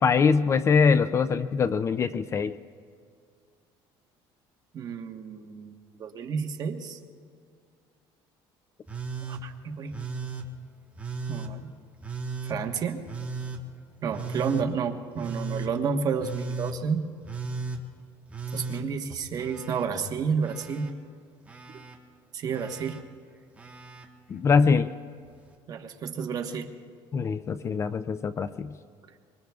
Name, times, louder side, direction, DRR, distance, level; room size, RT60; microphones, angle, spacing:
voice 1, 0.0-2.6 24.3-24.9 27.1-28.7, left 5 dB, 30° left, 13 dB, 0.4 m, -23 dB
voice 2, 4.7-5.7 6.0-7.0 9.3-10.0 11.3-11.7 12.4-13.0 14.0-17.1 18.5-20.9 21.7-21.8 22.3-23.0 25.7-26.7, right 6 dB, 40° right, 4 dB, 1.3 m, -30 dB
Telephone, 8.9-9.4 9.9-10.5 11.0-11.5 12.0-12.6 13.1-13.6 14.1-14.7 15.2-15.7 16.2-16.8 17.2-17.8 18.3-19.9 20.1-20.9 21.5-22.0 22.5-23.0 23.6-24.1 25.3-25.4, right 4 dB, 15° right, 1.2 m, -36 dB
24.5 x 23.5 x 2.4 m, 2.2 s
cardioid pair, 145°, 10 cm